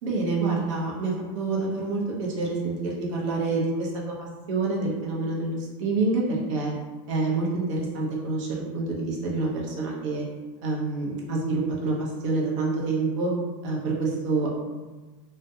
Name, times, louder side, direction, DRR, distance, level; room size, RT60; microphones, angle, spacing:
voice 1, 0.0-3.9 4.2-6.7 7.1-10.2 10.6-13.3 13.6-14.5, right 3 dB, 70° right, -4 dB, 0.8 m, -27 dB
2.3 x 2.1 x 2.7 m, 1.3 s
supercardioid pair, 160°, 17 cm